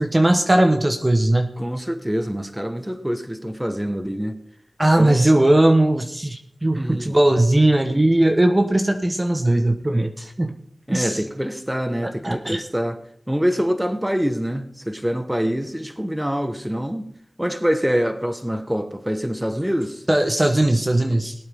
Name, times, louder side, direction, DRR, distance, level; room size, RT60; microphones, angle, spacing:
voice 1, 0.0-1.6 4.8-10.5 10.9-11.2 12.2-12.6 20.1-21.3, right 1 dB, 25° right, 1.1 m, -18 dB
voice 2, 1.6-4.3 5.0-5.2 6.8-7.1 10.9-13.0 13.3-17.1 17.4-20.0, equal, 10° right, 1.3 m, -25 dB
19.5 x 8.7 x 3.6 m
cardioid pair, 45°, 0 cm